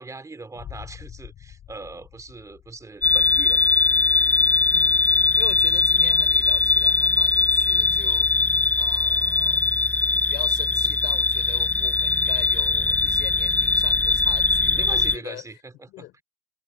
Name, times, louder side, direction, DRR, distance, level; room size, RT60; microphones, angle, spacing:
voice 1, 0.0-3.7 10.7-10.9 14.7-16.2, right 3 dB, 20° right, 2.6 m, -40 dB
sound 1, 0.5-3.5, left 10 dB, 60° left, 2.7 m, -44 dB
sound 2, 3.0-15.2, left 3 dB, 10° left, 0.3 m, -20 dB
voice 2, 4.7-9.7 10.1-15.5 15.9-16.1, left 17 dB, 85° left, 4.6 m, -42 dB
cardioid pair, 110°, 17 cm